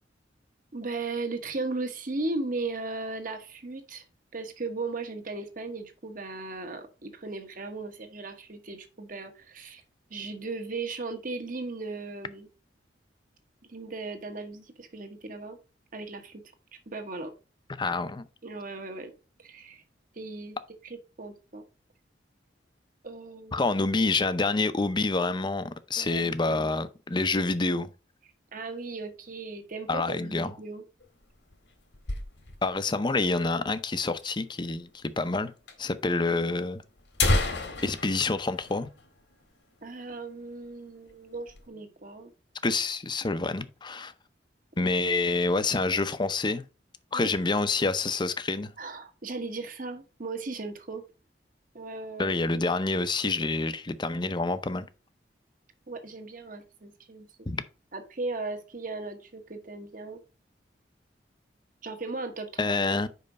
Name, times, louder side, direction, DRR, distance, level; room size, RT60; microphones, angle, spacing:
voice 1, 0.7-4.1 4.3-9.8 10.1-12.5 13.7-15.6 15.9-16.4 16.9-17.3 18.4-19.1 19.4-19.8 20.1-21.6 23.0-23.7 25.9-26.7 28.5-30.8 39.8-42.3 44.8-44.9 47.1-47.3 48.8-51.0 51.7-52.3 55.9-57.3 57.9-60.2 61.8-62.8, right 3 dB, 50° right, 1.2 m, -37 dB
voice 2, 17.8-18.2 23.5-27.9 29.9-30.5 32.6-35.5 35.8-36.8 37.8-38.9 42.6-44.1 44.8-46.6 47.1-48.7 52.2-54.9 57.5-57.6 62.6-63.1, left 3 dB, 25° left, 0.6 m, -27 dB
sound 1, 31.0-32.8 33.1-33.2 33.4-33.5 34.2-34.3 35.2-35.4 35.7-35.8 36.5-36.6 37.0-39.6 39.9-40.0 40.4-40.7 41.1-41.7, left 2 dB, 85° left, 1.9 m, -30 dB
5.4 x 5.1 x 5.2 m
head